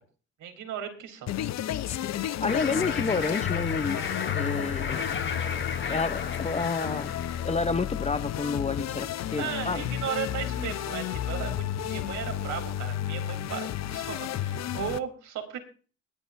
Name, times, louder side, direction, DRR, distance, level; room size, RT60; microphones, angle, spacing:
voice 1, 0.4-1.3 9.4-15.6, right 8 dB, 80° right, 5 dB, 3.6 m, -36 dB
sound 1, 1.3-15.0, left 11 dB, 60° left, 0.7 m, -32 dB
voice 2, 2.4-4.1 4.3-5.2 5.9-7.1 7.4-9.8, left 4 dB, 20° left, 12 dB, 0.8 m, -30 dB
sound 2, 2.5-7.5, left 6 dB, 40° left, 1.6 m, -34 dB
21.0 x 11.0 x 2.6 m, 0.38 s
cardioid pair, 90°, 30 cm